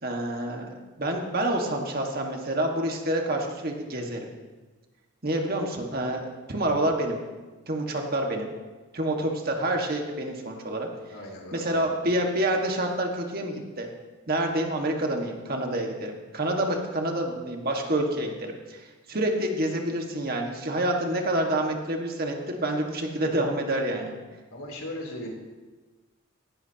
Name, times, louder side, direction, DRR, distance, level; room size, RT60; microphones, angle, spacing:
voice 1, 0.0-4.3 5.2-7.2 7.7-8.5 8.9-10.9 11.5-13.9 14.3-24.1, right 1 dB, 45° right, 2 dB, 1.7 m, -28 dB
voice 2, 11.1-11.9 24.5-25.3, left 1 dB, 90° left, -1 dB, 3.5 m, -38 dB
16.5 x 16.0 x 2.9 m, 1.3 s
head